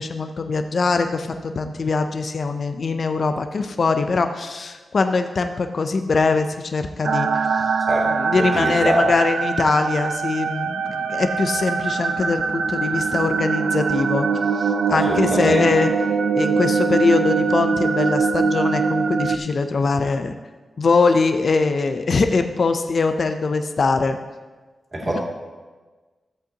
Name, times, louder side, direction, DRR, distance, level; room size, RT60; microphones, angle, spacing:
voice 1, 0.0-7.7 8.1-14.3 14.5-15.9 16.3-20.3 20.8-24.2 25.0-25.2, left 4 dB, 55° left, 7 dB, 0.5 m, -22 dB
sound 1, 7.0-19.4, right 5 dB, 80° right, 0.5 m, -22 dB
voice 2, 8.4-9.1 14.9-15.7 24.9-25.2, right 1 dB, 35° right, -4 dB, 2.4 m, -23 dB
14.0 x 8.0 x 2.8 m, 1.3 s
wide cardioid pair, 120°, 0 cm